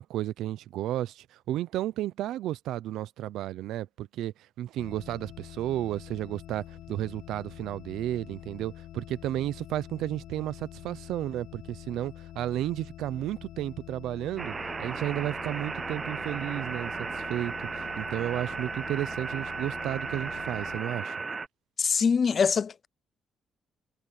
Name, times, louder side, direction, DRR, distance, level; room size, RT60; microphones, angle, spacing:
voice 1, 0.0-14.5 14.8-21.2, right 13 dB, 85° right, 0.7 m, -33 dB
sound 1, 4.8-20.8, left 12 dB, 80° left, 2.5 m, -46 dB
sound 2, 14.4-21.5, right 4 dB, 30° right, 0.4 m, -35 dB
voice 2, 21.8-22.9, left 6 dB, 45° left, 0.4 m, -24 dB
cardioid pair, 90°, 0 cm